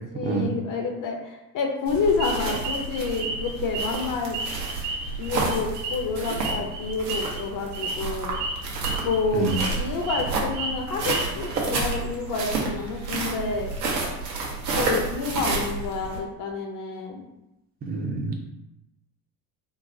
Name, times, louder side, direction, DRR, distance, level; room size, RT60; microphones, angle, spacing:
voice 1, 0.1-4.4 5.2-8.4 9.0-13.7 14.7-17.2, left 4 dB, 40° left, 2 dB, 0.6 m, -29 dB
sound 1, 1.9-16.2, right 3 dB, 80° right, 0.9 m, -30 dB
sound 2, 2.2-4.1 4.3-7.4 7.7-7.9 8.3-8.5 8.8-9.2 9.5-10.2 10.5-11.6, right 3 dB, 55° right, 0.9 m, -32 dB
voice 2, 17.9-18.4, right 4 dB, 20° right, 2 dB, 0.5 m, -27 dB
3.9 x 2.1 x 2.5 m, 0.92 s
hypercardioid pair, 75°, 48 cm